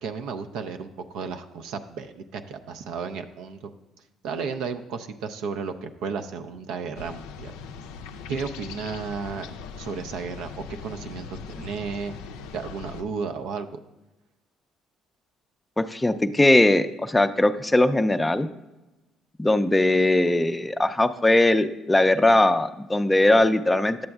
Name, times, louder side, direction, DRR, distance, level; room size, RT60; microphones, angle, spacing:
voice 1, 0.0-3.7 4.2-7.5 8.3-9.5 9.8-12.1 12.5-13.8, right 5 dB, 70° right, 8 dB, 0.4 m, -33 dB
sound 1, 6.9-13.0, left 5 dB, 75° left, 0.4 m, -40 dB
voice 2, 15.8-18.5 19.4-24.1, left 1 dB, 15° left, 10 dB, 0.4 m, -20 dB
10.5 x 7.6 x 2.3 m, 1.0 s
hypercardioid pair, 55°, 0 cm